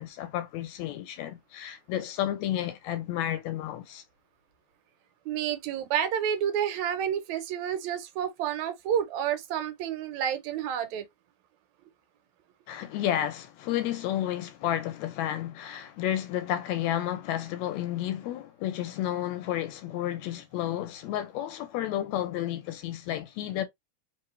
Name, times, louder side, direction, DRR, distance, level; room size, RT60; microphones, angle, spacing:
voice 1, 0.0-4.0 12.7-23.6, left 12 dB, 80° left, 1.8 m, -31 dB
voice 2, 5.3-11.1, right 9 dB, 80° right, 2.0 m, -29 dB
3.8 x 3.5 x 3.2 m
omnidirectional pair, 3.4 m